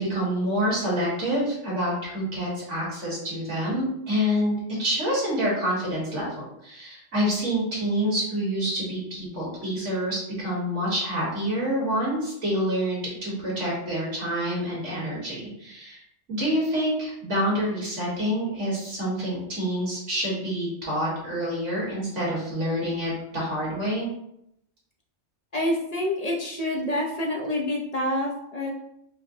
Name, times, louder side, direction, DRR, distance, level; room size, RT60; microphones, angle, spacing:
voice 1, 0.0-16.0 16.3-24.1, equal, 65° right, -5 dB, 1.6 m, -27 dB
voice 2, 25.5-28.7, left 1 dB, 55° left, -2 dB, 0.4 m, -27 dB
5.1 x 2.0 x 2.6 m, 0.77 s
omnidirectional pair, 1.3 m